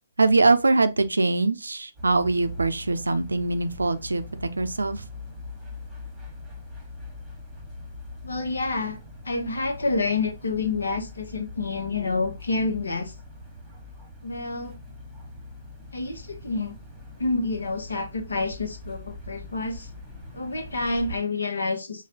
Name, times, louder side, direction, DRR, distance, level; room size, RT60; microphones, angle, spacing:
voice 1, 0.2-5.0, right 3 dB, 75° right, 0.5 m, -23 dB
sound 1, 1.9-21.2, left 2 dB, ahead, 1.3 m, -42 dB
voice 2, 8.2-9.0 9.2-13.1 14.2-14.7 15.9-16.8 17.2-19.9 20.3-22.1, left 3 dB, 70° left, 0.9 m, -28 dB
6.0 x 2.3 x 2.8 m
figure-of-eight pair, 130°, 0 cm